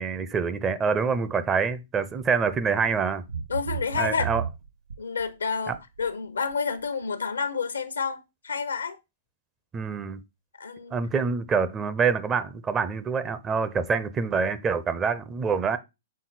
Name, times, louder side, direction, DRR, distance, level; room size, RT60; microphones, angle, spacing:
voice 1, 0.0-3.2 4.0-4.4 5.7-5.8 9.7-10.2 10.9-15.8, right 5 dB, 20° right, 0.7 m, -26 dB
sound 1, 2.0-2.2 2.5-2.9 3.3-5.3 5.7-6.1 6.5-6.6, right 7 dB, 70° right, 0.5 m, -33 dB
voice 2, 3.5-4.3 5.0-9.0 10.6-10.9, left 5 dB, 80° left, 0.9 m, -29 dB
6.4 x 3.7 x 4.1 m
figure-of-eight pair, 115°, 0 cm